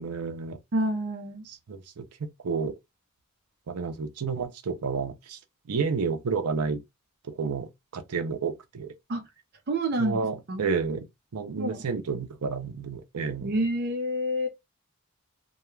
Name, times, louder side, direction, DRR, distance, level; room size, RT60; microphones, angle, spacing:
voice 1, 0.0-0.6 1.5-2.7 3.7-5.4 5.7-6.8 7.4-8.9 10.0-11.1 11.3-13.5, right 5 dB, 90° right, 0.5 m, -30 dB
voice 2, 0.7-1.4 9.1-9.2 9.7-10.2 10.5-10.6 11.6-11.8 13.4-14.5, right 1 dB, 45° right, 0.6 m, -28 dB
2.2 x 2.2 x 3.1 m
head